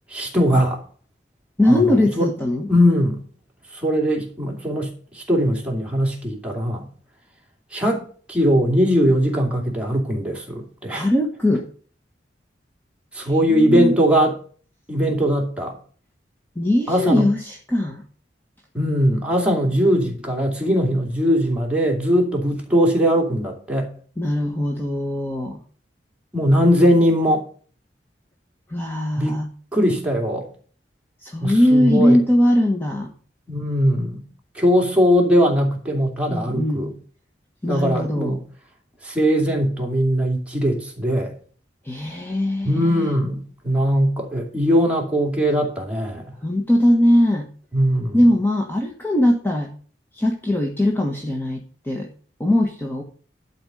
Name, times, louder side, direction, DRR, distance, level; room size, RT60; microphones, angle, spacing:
voice 1, 0.1-0.8 1.6-2.3 2.7-3.2 3.7-6.9 7.7-11.1 13.1-14.4 14.9-15.8 16.9-17.3 18.7-23.9 26.3-27.5 29.2-29.4 29.7-30.5 31.4-32.2 33.5-34.2 34.5-36.9 37.7-38.4 39.0-41.3 42.6-46.4 47.7-48.2, equal, 5° right, 2.6 m, -20 dB
voice 2, 1.6-2.7 10.9-11.6 13.2-13.9 16.5-18.0 24.2-25.6 28.7-29.5 31.2-33.1 36.3-36.9 37.6-38.4 41.8-43.1 46.4-47.5 48.1-49.7 50.1-52.1 52.4-53.0, left 1 dB, 10° left, 1.3 m, -20 dB
12.0 x 4.5 x 7.9 m
head